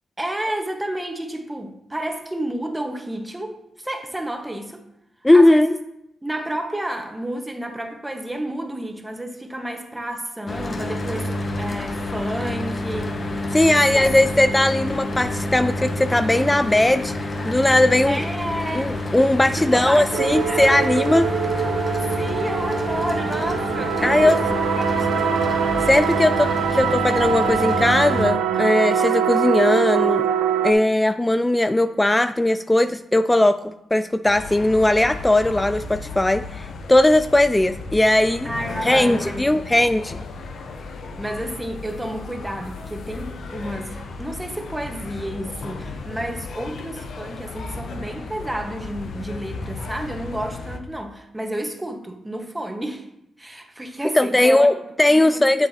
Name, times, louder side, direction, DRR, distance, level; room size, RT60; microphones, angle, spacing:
voice 1, 0.2-4.8 5.3-5.8 6.2-13.2 13.6-14.1 18.1-18.9 19.4-20.9 22.2-24.4 24.8-25.4 38.4-39.6 41.2-53.1 53.4-54.8 55.1-55.5, right 1 dB, 10° right, 4 dB, 1.3 m, -31 dB
voice 2, 5.2-5.7 13.5-18.3 18.7-21.3 24.0-24.4 25.9-30.3 30.6-38.5 38.8-40.2 54.1-55.7, left 1 dB, 15° left, 11 dB, 0.3 m, -18 dB
Mechanical fan, 10.5-28.3, left 1 dB, 45° left, 1.3 m, -28 dB
sound 1, 20.1-30.7, right 7 dB, 75° right, 0.6 m, -23 dB
sound 2, 34.3-50.8, left 3 dB, 65° left, 0.8 m, -35 dB
7.9 x 7.3 x 2.8 m, 0.83 s
supercardioid pair, 50°, 0 cm